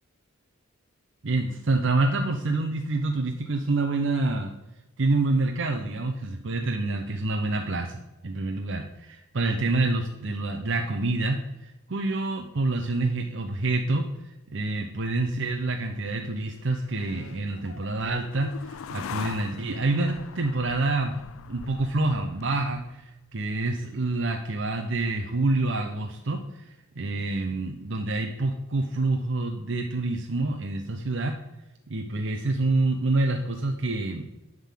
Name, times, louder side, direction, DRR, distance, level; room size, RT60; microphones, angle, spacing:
voice 1, 1.2-4.5 5.0-31.4 31.9-34.3, right 2 dB, 55° right, 3 dB, 0.7 m, -27 dB
sound 1, 15.7-23.1, left 7 dB, 75° left, 0.4 m, -42 dB
10.5 x 3.7 x 7.5 m, 0.98 s
head